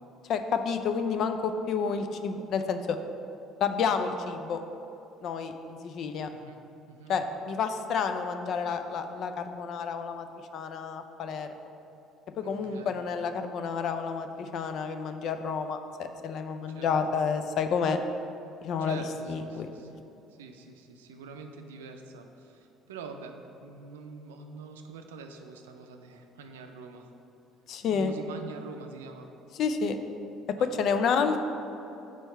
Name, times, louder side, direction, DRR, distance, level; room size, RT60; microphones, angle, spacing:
voice 1, 0.3-3.0 3.6-4.6 5.2-6.3 7.1-10.3 10.5-11.5 12.4-18.0 18.6-19.7 27.7-28.1 29.5-30.0 30.6-31.5, left 6 dB, 60° left, 8 dB, 0.4 m, -30 dB
voice 2, 6.3-6.6 6.9-7.1 12.4-12.9 16.7-16.9 18.8-27.1 27.9-29.3 30.6-30.7, right 4 dB, 85° right, 5 dB, 0.4 m, -45 dB
4.5 x 4.4 x 5.5 m, 2.9 s
hypercardioid pair, 65°, 0 cm